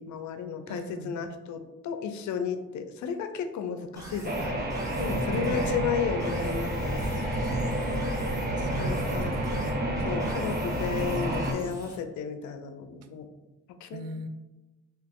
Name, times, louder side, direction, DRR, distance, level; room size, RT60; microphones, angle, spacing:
voice 1, 0.0-4.5 5.0-7.7 8.8-9.3 10.0-13.3 13.8-14.0, left 6 dB, 70° left, 7 dB, 0.5 m, -33 dB
voice 2, 0.7-1.2 5.3-6.0 8.5-9.6 13.9-14.3, right 4 dB, 55° right, 8 dB, 0.4 m, -40 dB
sound 1, 4.0-12.0, right 1 dB, 10° right, 1.0 m, -45 dB
sound 2, 4.2-11.5, right 1 dB, 30° right, 0.7 m, -29 dB
2.9 x 2.9 x 3.5 m, 1.1 s
cardioid pair, 90°, 30 cm